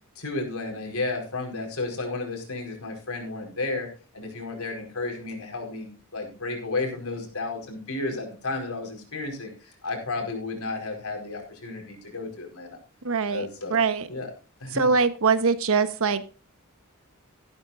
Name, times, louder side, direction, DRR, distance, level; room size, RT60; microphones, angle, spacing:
voice 1, 0.2-9.5 9.8-12.8 13.3-13.8 14.1-14.3 14.6-14.9, left 3 dB, 70° left, 4.8 m, -32 dB
voice 2, 13.0-14.1 14.7-16.3, right 5 dB, 65° right, 1.1 m, -23 dB
14.5 x 13.0 x 2.6 m
head